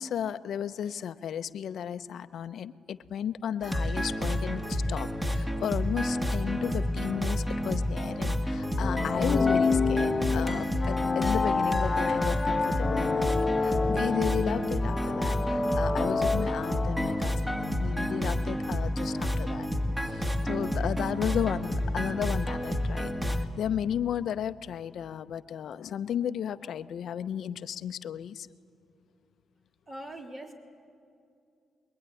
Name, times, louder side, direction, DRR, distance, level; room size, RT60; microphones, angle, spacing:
voice 1, 0.0-19.7 20.0-28.5, left 9 dB, 75° left, 12 dB, 0.7 m, -34 dB
sound 1, 3.6-23.4, equal, 10° right, 2.3 m, -30 dB
sound 2, 8.8-17.4, left 4 dB, 30° left, 1.0 m, -28 dB
voice 2, 29.9-30.5, right 1 dB, 35° right, 1 dB, 3.7 m, -41 dB
26.0 x 21.5 x 10.0 m, 2.6 s
cardioid pair, 70°, 0 cm